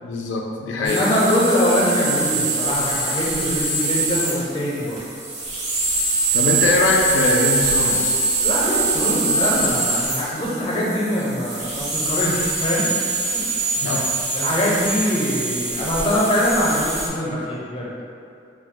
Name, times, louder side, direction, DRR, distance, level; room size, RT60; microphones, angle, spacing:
voice 1, 0.0-1.1 6.3-8.2 13.8-14.1, left 2 dB, 85° left, 0 dB, 0.3 m, -22 dB
voice 2, 0.8-5.0 8.4-13.0 14.3-17.9, equal, 30° left, -6 dB, 0.5 m, -23 dB
sound 1, 0.8-17.1, right 3 dB, 35° right, 0.4 m, -24 dB
2.6 x 2.1 x 3.7 m, 2.5 s
head